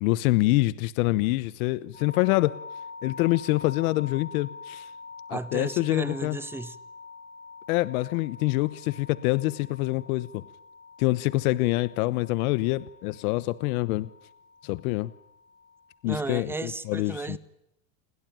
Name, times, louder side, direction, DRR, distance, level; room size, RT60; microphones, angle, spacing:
voice 1, 0.0-2.6 3.0-4.9 5.3-6.4 7.7-10.4 11.0-14.1 14.6-15.1 16.0-17.4, left 19 dB, 65° left, 1.1 m, -26 dB
sound 1, 1.9-16.0, left 4 dB, 15° left, 4.2 m, -46 dB
voice 2, 5.3-6.8 16.1-17.4, right 3 dB, 5° right, 1.1 m, -34 dB
30.0 x 21.5 x 9.0 m
supercardioid pair, 170°, 47 cm